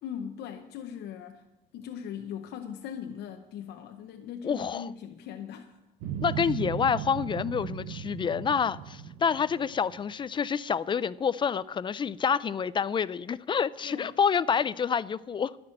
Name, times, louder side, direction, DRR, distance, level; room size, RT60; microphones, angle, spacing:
voice 1, 0.0-1.4 1.7-5.8 13.8-14.1, left 8 dB, 75° left, 0.8 m, -40 dB
voice 2, 4.4-4.9 6.2-15.6, left 7 dB, 30° left, 0.4 m, -28 dB
sound 1, 6.0-10.3, right 9 dB, 90° right, 0.8 m, -37 dB
12.0 x 6.0 x 8.7 m
cardioid pair, 110°, 17 cm